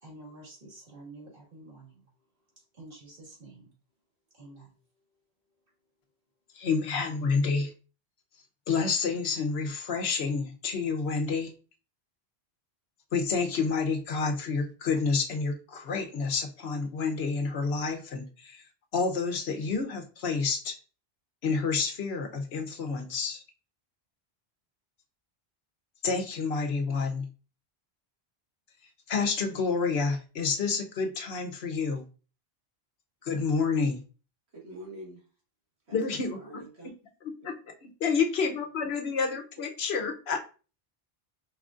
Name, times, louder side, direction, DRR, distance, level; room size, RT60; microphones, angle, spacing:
voice 1, 0.0-2.0 2.7-3.6 4.3-4.7, right 2 dB, 60° right, -2 dB, 2.0 m, -48 dB
voice 2, 6.5-7.7 8.7-11.5 13.1-18.6 18.9-20.8 21.4-23.4 26.0-27.3 29.1-32.1 33.2-34.0 35.9-36.6 37.4-37.5 37.8-40.4, left 4 dB, 80° left, 5 dB, 1.0 m, -29 dB
voice 3, 34.5-35.2 35.9-36.0 36.3-36.9 38.0-38.2, right 1 dB, 85° right, -1 dB, 1.8 m, -45 dB
4.8 x 3.8 x 2.4 m, 0.36 s
omnidirectional pair, 1.1 m